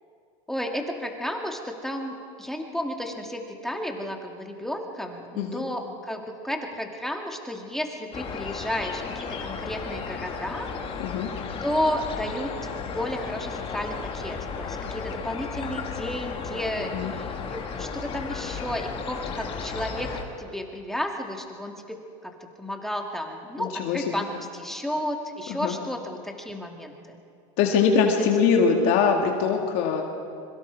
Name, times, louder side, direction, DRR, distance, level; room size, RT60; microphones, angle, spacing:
voice 1, 0.5-10.7 11.6-27.2 28.2-28.3, equal, ahead, 2 dB, 2.1 m, -32 dB
sound 1, 8.1-20.2, left 5 dB, 35° left, 2.4 m, -34 dB
voice 2, 16.8-17.1 23.6-24.2 25.5-25.8 27.6-30.0, left 6 dB, 65° left, 2 dB, 2.3 m, -23 dB
25.5 x 23.0 x 4.8 m, 2.4 s
supercardioid pair, 120°, 17 cm